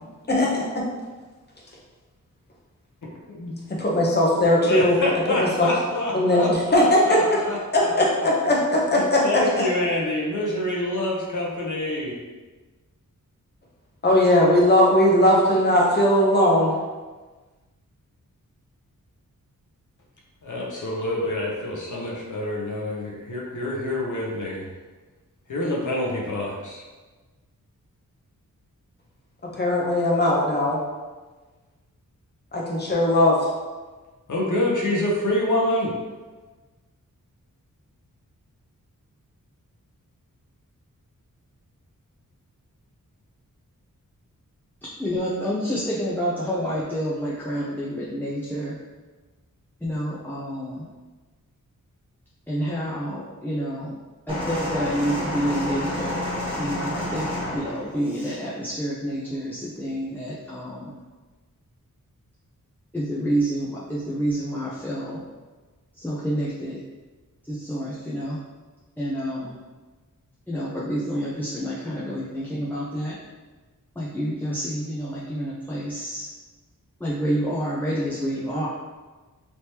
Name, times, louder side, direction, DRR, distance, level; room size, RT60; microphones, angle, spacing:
voice 1, 0.0-0.8 3.7-5.0 5.4-5.7 6.1-7.2 7.7-9.4 14.0-16.7 29.6-30.8 32.5-33.4, left 1 dB, 30° left, -3 dB, 0.8 m, -19 dB
voice 2, 3.0-3.8 4.6-7.9 8.2-8.3 8.9-12.2 20.4-24.7 25.5-26.8 34.3-35.9, left 1 dB, 65° left, -3 dB, 0.8 m, -27 dB
voice 3, 45.0-48.8 49.8-50.9 52.5-53.9 54.3-56.3 56.6-61.0 62.9-65.2 66.0-66.8 67.4-68.4 69.0-69.5 70.5-73.2 74.0-76.3 77.0-78.7, equal, 5° left, -6 dB, 0.4 m, -28 dB
sound 1, 54.3-58.4 59.3-59.4, left 1 dB, 15° right, 1.1 m, -30 dB
3.4 x 3.0 x 2.8 m, 1.3 s
wide cardioid pair, 120°, 33 cm